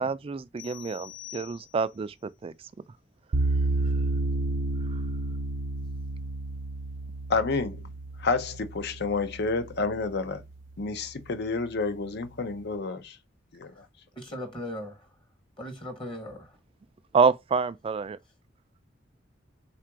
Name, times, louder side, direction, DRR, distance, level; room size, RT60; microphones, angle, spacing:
voice 1, 0.0-2.1 2.4-2.5 17.1-18.2, right 5 dB, 30° right, 0.3 m, -27 dB
sound 1, 0.6-2.1, left 15 dB, 90° left, 0.9 m, -46 dB
sound 2, 3.3-10.4, right 2 dB, 80° right, 0.7 m, -31 dB
voice 2, 7.3-7.8 8.2-10.4 10.8-13.2 13.5-13.8, left 4 dB, 60° left, 0.6 m, -29 dB
voice 3, 14.1-15.1 15.6-16.6, equal, 25° left, 1.0 m, -38 dB
3.7 x 2.5 x 4.6 m
head